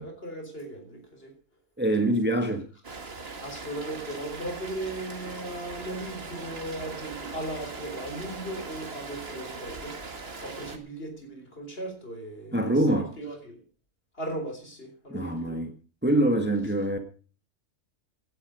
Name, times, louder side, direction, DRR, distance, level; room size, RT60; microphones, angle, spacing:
voice 1, 0.0-1.4 2.0-2.1 3.4-13.6 14.1-15.6, right 1 dB, 45° left, 4.2 m, -37 dB
voice 2, 1.8-2.6 12.5-13.1 15.1-15.7 16.0-17.0, right 1 dB, 10° right, 1.6 m, -24 dB
Rain, 2.8-10.8, right 3 dB, 50° right, 2.0 m, -40 dB
16.5 x 11.0 x 5.1 m
omnidirectional pair, 1.4 m